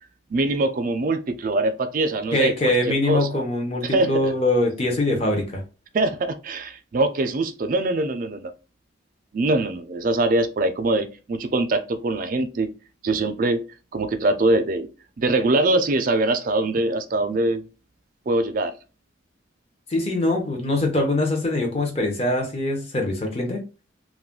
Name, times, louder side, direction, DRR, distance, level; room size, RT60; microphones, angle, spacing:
voice 1, 0.3-3.4 3.8-4.3 5.9-8.5 9.3-12.7 13.0-13.6 13.9-14.9 15.2-17.7 18.3-18.7, right 2 dB, 45° right, 0.3 m, -23 dB
voice 2, 2.3-5.6 19.9-23.6, left 1 dB, 30° left, 0.7 m, -23 dB
2.4 x 2.1 x 3.5 m
head